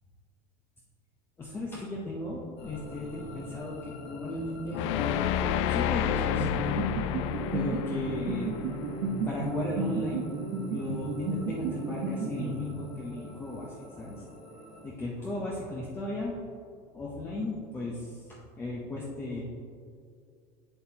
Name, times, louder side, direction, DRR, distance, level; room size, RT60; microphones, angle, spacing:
voice 1, 1.4-7.2 7.5-8.5 9.2-10.2 10.7-14.3 14.8-16.4 16.9-19.5, left 2 dB, 15° left, -5 dB, 0.8 m, -36 dB
sound 1, 2.6-14.9, left 1 dB, 40° left, 1.7 m, -47 dB
sound 2, 4.7-9.8, left 11 dB, 75° left, 0.4 m, -31 dB
sound 3, 6.4-13.1, right 3 dB, 65° right, 0.9 m, -33 dB
7.9 x 7.9 x 2.9 m, 2.3 s
cardioid pair, 160°, 15 cm